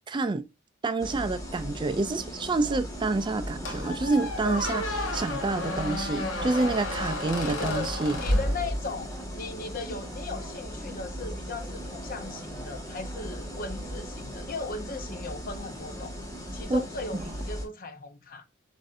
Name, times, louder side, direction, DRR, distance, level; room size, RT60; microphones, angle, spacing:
voice 1, 0.1-0.5 0.8-8.2 16.7-16.8, right 3 dB, 25° right, 0.3 m, -28 dB
sound 1, 1.0-17.7, equal, 15° left, 1.3 m, -38 dB
sound 2, 2.2-14.6, right 3 dB, 5° right, 1.6 m, -49 dB
Squeak, 3.6-9.1, left 1 dB, 85° left, 0.9 m, -31 dB
voice 2, 7.3-7.9 8.2-16.1 16.5-18.5, left 3 dB, 45° left, 0.7 m, -37 dB
7.4 x 2.6 x 2.5 m
head